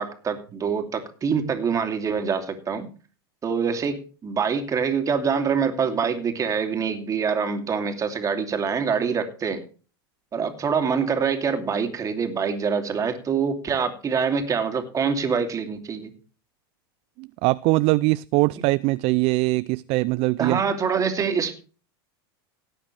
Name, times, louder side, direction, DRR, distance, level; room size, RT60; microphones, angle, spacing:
voice 1, 0.0-2.9 3.4-9.6 10.3-16.1 20.4-21.6, right 6 dB, 25° right, 2.7 m, -25 dB
voice 2, 17.2-20.6, right 22 dB, 50° right, 0.4 m, -22 dB
17.5 x 8.9 x 3.3 m
hypercardioid pair, 110°, 13 cm